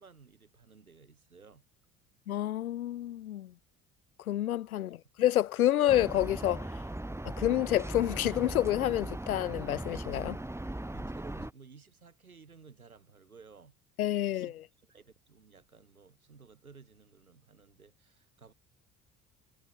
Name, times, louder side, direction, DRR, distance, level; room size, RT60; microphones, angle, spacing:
voice 1, 0.0-1.6 4.7-4.9 10.9-13.8 14.2-18.5, right 5 dB, 85° right, 3.6 m, -56 dB
voice 2, 2.3-3.5 4.3-6.7 7.2-10.4 14.0-14.6, left 12 dB, 85° left, 0.5 m, -29 dB
sound 1, 5.9-11.5, right 1 dB, 5° right, 2.9 m, -39 dB
figure-of-eight pair, 55°, 42 cm